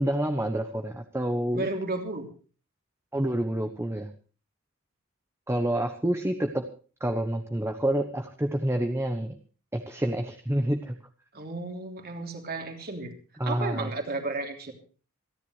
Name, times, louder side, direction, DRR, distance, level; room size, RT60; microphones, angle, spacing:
voice 1, 0.0-1.7 3.1-4.1 5.5-6.6 7.0-9.3 9.7-11.0 13.4-13.9, right 1 dB, 10° right, 6 dB, 1.0 m, -28 dB
voice 2, 1.5-2.3 11.3-13.1 13.4-14.7, right 2 dB, 45° right, 4 dB, 3.1 m, -33 dB
27.0 x 10.5 x 3.3 m, 0.38 s
head